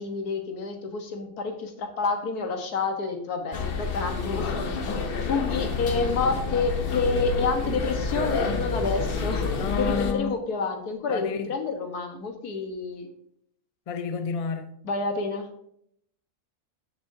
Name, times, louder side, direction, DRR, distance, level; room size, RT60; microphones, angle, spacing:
voice 1, 0.0-13.1 14.8-15.5, left 4 dB, 85° left, 1.8 m, -29 dB
sound 1, 3.5-10.1, left 4 dB, 45° left, 0.9 m, -29 dB
voice 2, 9.6-10.4 11.1-11.5 13.9-14.7, left 5 dB, 70° left, 0.3 m, -30 dB
14.0 x 6.6 x 2.7 m
omnidirectional pair, 1.6 m